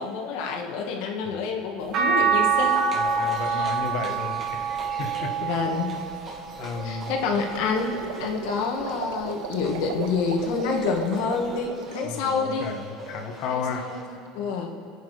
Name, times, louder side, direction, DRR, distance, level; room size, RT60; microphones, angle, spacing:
voice 1, 0.0-2.9 3.3-3.7 5.4-5.9 6.8-12.7 13.5-14.7, left 5 dB, 75° left, 2 dB, 2.1 m, -28 dB
sound 1, 1.9-8.2 8.8-10.2 11.6-11.7, right 6 dB, 55° right, 3.7 m, -27 dB
Livestock farm animals working animals, 2.7-14.0, right 3 dB, 35° right, 2.8 m, -43 dB
voice 2, 2.9-5.3 6.6-7.1 12.0-13.9, left 5 dB, 60° left, 3 dB, 1.9 m, -33 dB
sound 2, 7.2-12.1, right 9 dB, 90° right, 0.7 m, -37 dB
26.5 x 9.2 x 5.2 m, 2.4 s
supercardioid pair, 115°, 0 cm